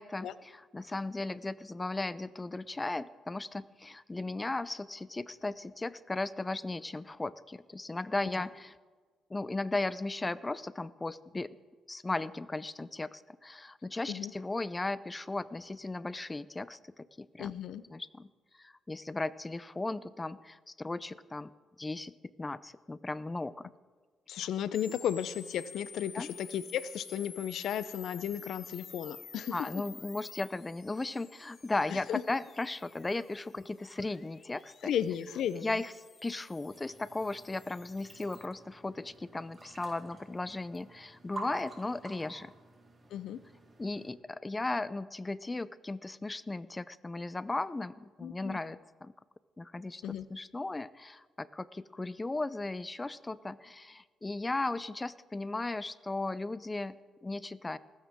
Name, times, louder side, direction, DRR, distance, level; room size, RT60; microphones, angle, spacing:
voice 1, 0.0-8.7 9.3-11.6 11.9-17.5 17.9-18.3 18.6-21.5 21.8-23.7 24.4-24.5 26.1-26.3 29.5-34.9 35.6-35.9 36.2-42.5 43.8-49.1 49.6-57.8, left 2 dB, 20° left, 17 dB, 0.5 m, -36 dB
voice 2, 17.4-17.8 24.3-29.5 31.9-32.2 34.8-35.8 43.1-43.4 48.2-48.6 50.0-50.3, left 9 dB, 75° left, 15 dB, 0.7 m, -34 dB
sound 1, 24.7-38.5, left 6 dB, 45° left, 0.9 m, -51 dB
sound 2, 36.7-44.1, right 2 dB, 30° right, 4.1 m, -49 dB
19.0 x 16.0 x 3.7 m, 1.4 s
cardioid pair, 90°, 0 cm